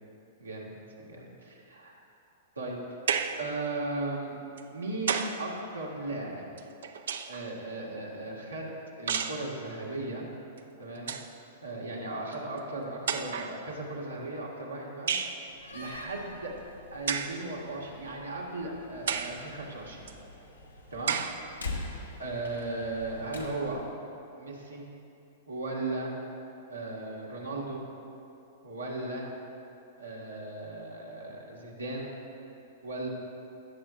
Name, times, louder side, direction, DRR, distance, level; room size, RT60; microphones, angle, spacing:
voice 1, 0.4-0.7 1.0-1.9 2.6-2.8 3.4-4.4 4.7-6.4 7.3-10.3 10.8-11.1 11.6-15.4 15.7-16.5 16.9-20.1 20.9-21.2 21.6-21.9 22.2-23.8 24.4-24.8 25.5-26.1 26.7-27.8 28.6-29.3 30.0-32.1 32.8-33.1, right 2 dB, 85° right, -3 dB, 1.7 m, -36 dB
sound 1, 3.1-3.5 4.6-5.5 6.6-7.5 9.1-9.5 10.6-10.7 11.0-11.3 12.3-12.4 13.1-13.6 15.1-15.4 17.1-17.4 18.1-18.2 19.1-19.4 20.1-20.2 21.1-21.4, right 7 dB, 65° right, 0.5 m, -31 dB
Slam, 15.5-23.9, left 2 dB, 85° left, 1.1 m, -44 dB
17.0 x 7.5 x 2.5 m, 2.8 s
figure-of-eight pair, 100°, 0 cm